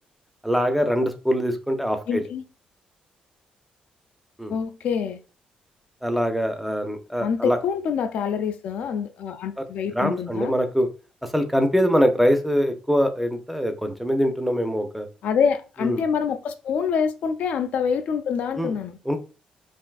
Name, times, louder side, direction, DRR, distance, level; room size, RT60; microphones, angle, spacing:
voice 1, 0.4-2.2 4.4-4.5 6.0-7.6 9.6-9.7 9.9-10.9 11.3-15.1 15.8-16.0 18.6-18.7 19.1-19.2, equal, ahead, 0.5 m, -23 dB
voice 2, 2.1-2.4 4.5-5.2 7.2-10.5 15.2-19.0, left 6 dB, 70° left, 0.4 m, -26 dB
3.3 x 2.6 x 2.3 m
cardioid pair, 140°, 3 cm